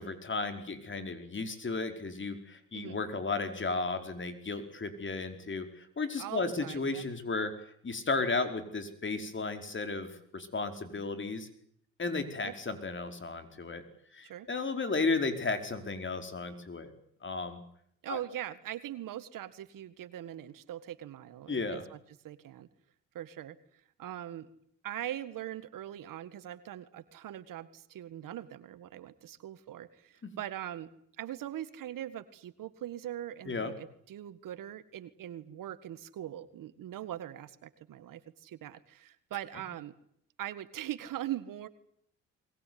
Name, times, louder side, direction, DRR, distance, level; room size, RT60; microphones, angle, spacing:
voice 1, 0.0-7.5 7.8-11.5 12.0-13.8 14.1-16.9 17.2-17.6 18.1-18.2 21.5-21.8 30.2-30.3 33.5-33.7 39.5-39.6, left 3 dB, 35° left, 8 dB, 4.9 m, -34 dB
voice 2, 6.2-7.1 12.4-12.5 14.2-14.5 18.0-22.0 22.2-22.7 23.1-23.6 24.0-24.5 24.8-30.9 31.2-39.9 40.4-41.7, right 12 dB, 70° right, 13 dB, 2.0 m, -41 dB
22.5 x 21.0 x 9.6 m, 0.67 s
supercardioid pair, 70°, 34 cm